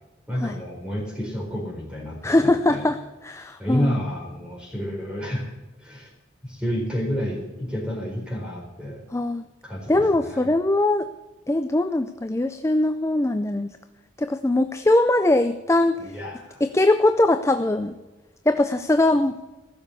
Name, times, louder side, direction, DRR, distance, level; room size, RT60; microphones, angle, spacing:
voice 1, 0.3-2.9 3.6-5.4 5.8-6.1 6.4-9.0 9.6-10.4 16.0-16.6, equal, 5° right, -1 dB, 4.1 m, -30 dB
voice 2, 2.2-4.0 9.1-9.5 9.9-11.1 11.5-13.7 14.2-16.1 16.6-18.0 18.5-19.4, left 2 dB, 15° left, 9 dB, 0.4 m, -21 dB
15.5 x 6.8 x 9.7 m, 1.1 s
head